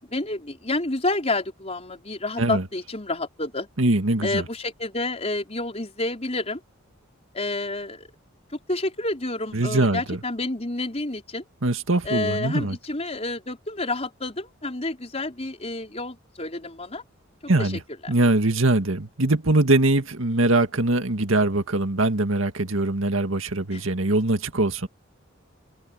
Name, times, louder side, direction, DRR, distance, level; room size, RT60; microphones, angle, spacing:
voice 1, 0.0-3.7 4.2-6.6 7.3-8.1 8.7-11.4 12.0-17.0 17.4-17.7 18.0-18.1 23.7-23.8, left 2 dB, 30° left, 5.0 m, -29 dB
voice 2, 3.8-4.4 9.5-10.2 11.6-12.8 17.5-17.8 18.1-24.9, right 2 dB, 80° right, 1.9 m, -22 dB
open air
head